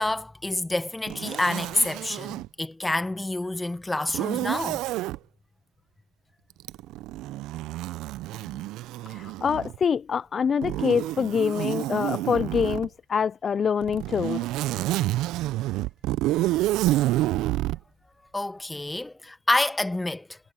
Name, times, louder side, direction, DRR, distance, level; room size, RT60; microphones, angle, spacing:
voice 1, 0.0-4.8 18.3-20.4, left 2 dB, 10° left, 1.6 m, -28 dB
Zipper (clothing), 1.1-2.5 4.1-5.2 6.6-9.8 10.6-12.9 13.8-17.8, right 16 dB, 50° right, 1.0 m, -28 dB
voice 2, 9.1-14.5, left 6 dB, 25° left, 0.9 m, -25 dB
hypercardioid pair, 95°, 0 cm